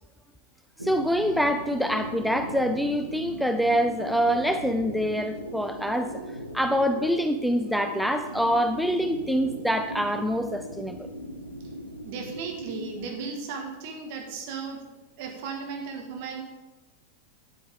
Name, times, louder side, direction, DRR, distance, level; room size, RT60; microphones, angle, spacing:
voice 1, 0.8-6.1 6.5-11.1, equal, ahead, 7 dB, 0.4 m, -25 dB
sound 1, 0.8-13.3, right 1 dB, 85° right, 1.0 m, -38 dB
voice 2, 12.0-14.8 15.2-16.4, right 5 dB, 50° right, 2 dB, 1.9 m, -35 dB
9.7 x 8.4 x 3.7 m, 1.1 s
figure-of-eight pair, 90°, 0 cm